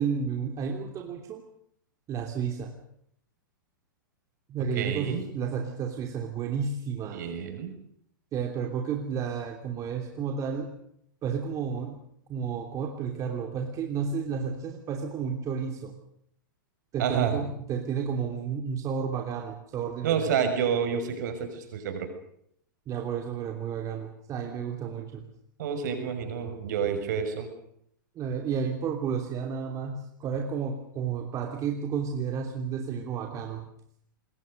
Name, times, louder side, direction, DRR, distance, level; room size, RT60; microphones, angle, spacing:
voice 1, 0.0-1.4 2.1-2.8 4.5-7.2 8.3-10.7 11.2-12.0 12.3-15.9 16.9-20.3 22.9-25.3 28.1-33.7, right 6 dB, 30° right, 3 dB, 3.0 m, -32 dB
voice 2, 4.7-5.3 7.1-7.7 17.0-17.4 20.0-22.1 25.6-27.5, right 7 dB, 60° right, 6 dB, 6.5 m, -29 dB
27.0 x 22.0 x 6.7 m, 0.70 s
hypercardioid pair, 110°, 11 cm